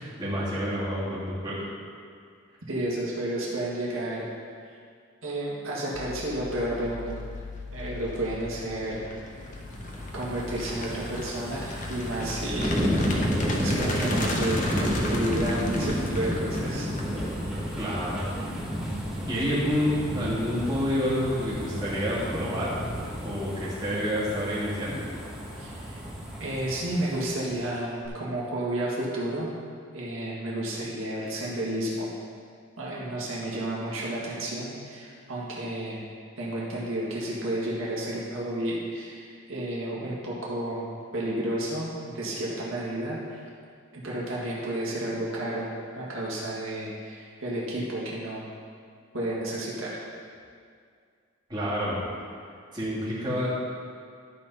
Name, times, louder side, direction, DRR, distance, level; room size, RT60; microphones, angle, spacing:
voice 1, 0.0-1.6 17.8-18.3 19.2-22.8 23.2-25.0 51.5-52.0 52.7-53.5, equal, 20° right, -9 dB, 2.4 m, -28 dB
voice 2, 2.7-4.3 4.6-4.8 5.2-7.2 7.7-9.1 10.1-12.7 13.6-16.9 25.6-26.0 26.4-29.6 29.9-32.1 32.8-36.0 36.4-43.5 43.9-48.5 49.1-50.1, right 1 dB, 85° right, -6 dB, 1.8 m, -31 dB
sound 1, 5.9-23.4, left 3 dB, 55° left, 0.6 m, -44 dB
sound 2, 6.8-7.1 7.6-17.7, left 1 dB, 40° left, 1.0 m, -36 dB
sound 3, 9.5-27.6 28.0-28.1, equal, 5° right, 1.2 m, -32 dB
12.0 x 4.2 x 5.6 m, 2.2 s
head